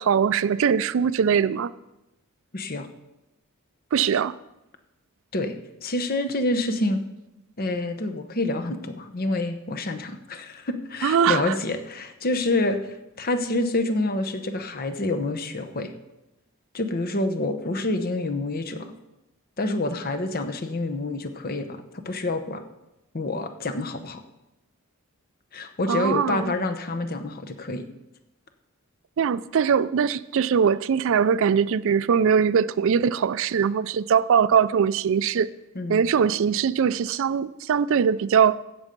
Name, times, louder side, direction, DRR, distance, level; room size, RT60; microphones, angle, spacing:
voice 1, 0.0-1.7 3.9-4.4 11.0-11.5 25.9-26.6 29.2-35.5 35.9-38.6, right 7 dB, 65° right, 0.4 m, -21 dB
voice 2, 2.5-2.9 5.3-5.5 5.8-7.0 7.6-15.9 16.7-18.9 19.6-22.6 23.1-24.2 25.5-27.8 35.8-36.0, left 2 dB, 45° left, 0.9 m, -27 dB
16.0 x 6.9 x 5.2 m
head